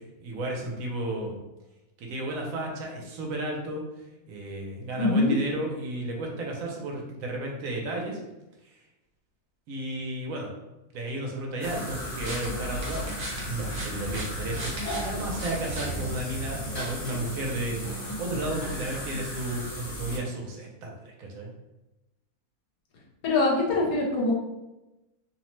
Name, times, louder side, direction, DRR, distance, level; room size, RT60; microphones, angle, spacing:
voice 1, 0.2-1.4 2.0-3.8 4.3-8.2 9.7-10.5 10.9-13.1 13.5-21.5, right 1 dB, 75° right, 0 dB, 1.0 m, -33 dB
voice 2, 5.0-5.4 23.2-24.3, left 2 dB, 85° left, -3 dB, 1.1 m, -23 dB
sound 1, 11.6-20.2, equal, 55° left, 1.3 m, -36 dB
sound 2, 11.9-16.8, right 1 dB, 50° right, 0.9 m, -37 dB
2.7 x 2.0 x 3.0 m, 0.99 s
omnidirectional pair, 1.5 m